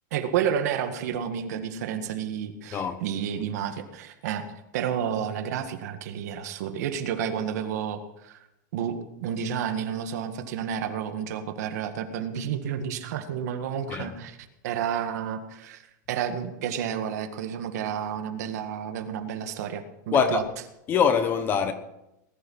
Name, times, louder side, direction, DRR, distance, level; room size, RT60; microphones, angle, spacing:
voice 1, 0.1-4.4 4.7-8.4 8.7-14.4 14.6-15.8 16.1-20.4, right 8 dB, 60° right, 1.8 m, -30 dB
voice 2, 2.7-3.0 13.9-14.1 20.1-20.4 20.9-21.7, left 7 dB, 20° left, 1.0 m, -23 dB
19.5 x 11.5 x 5.6 m
supercardioid pair, 170°, 10 cm